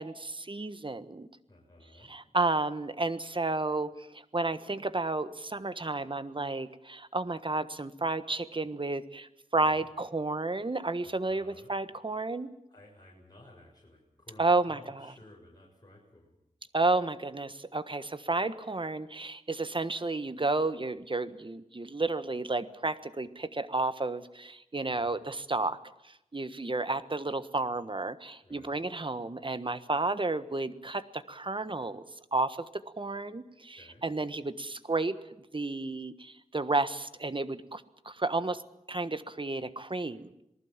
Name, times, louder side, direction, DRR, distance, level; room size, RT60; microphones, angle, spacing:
voice 1, 0.0-1.3 2.1-12.5 14.4-15.1 16.7-25.8 26.3-32.0 32.3-35.2 35.5-38.6 38.9-40.3, right 2 dB, 40° right, 12 dB, 1.4 m, -32 dB
voice 2, 1.5-2.2 9.6-9.9 11.0-11.7 12.7-16.3 24.9-25.2 28.4-28.8 33.8-34.1, left 1 dB, 30° left, -2 dB, 6.9 m, -55 dB
27.0 x 19.5 x 7.4 m, 0.83 s
wide cardioid pair, 60°, 13 cm